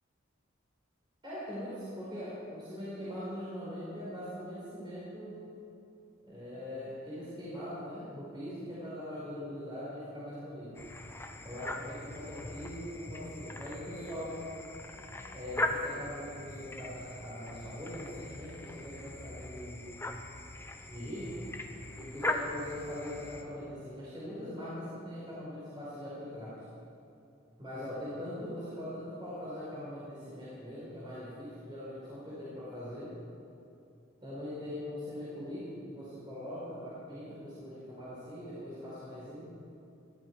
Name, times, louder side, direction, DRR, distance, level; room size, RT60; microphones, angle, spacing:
voice 1, 1.2-5.5 6.2-10.8 11.4-14.4 15.3-19.9 20.9-21.4 21.9-26.6 27.6-33.1 34.2-39.5, left 1 dB, 25° right, -10 dB, 5.0 m, -41 dB
sound 1, 10.7-23.4, left 1 dB, 10° left, 0.8 m, -40 dB
21.0 x 14.0 x 4.9 m, 2.7 s
head